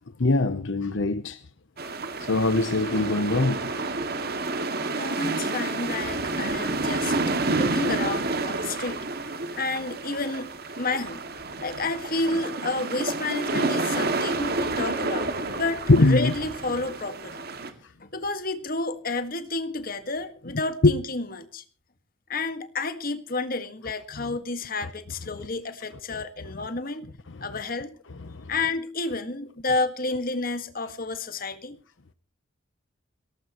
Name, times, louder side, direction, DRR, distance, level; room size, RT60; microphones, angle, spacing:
voice 1, 0.2-1.4 2.2-3.7 15.9-16.3 20.8-20.9, left 2 dB, 70° left, 0.9 m, -21 dB
sound 1, 1.8-17.7, right 3 dB, 55° right, 2.1 m, -29 dB
voice 2, 4.9-9.1 9.6-10.5 10.8-11.2 11.6-15.3 15.6-17.5 18.0-21.6 22.3-27.1 27.4-28.0 28.5-31.8, left 3 dB, 50° left, 1.7 m, -30 dB
22.5 x 18.0 x 3.0 m
head